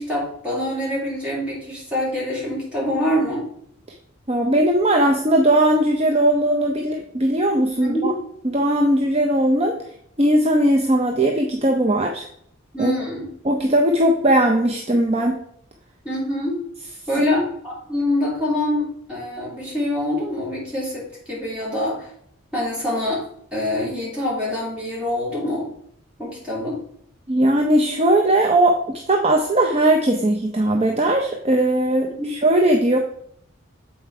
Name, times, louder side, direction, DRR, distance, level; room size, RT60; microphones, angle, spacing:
voice 1, 0.0-3.4 7.8-8.2 12.7-13.3 16.0-16.6 17.1-22.1 22.5-23.2 23.5-25.7 26.2-26.8 32.2-32.3, left 1 dB, 5° right, -7 dB, 3.0 m, -25 dB
voice 2, 4.3-8.1 8.4-9.8 10.2-12.2 12.8-12.9 13.4-15.4 17.3-17.5 27.3-33.0, right 1 dB, 30° right, 2 dB, 0.5 m, -19 dB
7.5 x 4.5 x 4.6 m, 0.69 s
head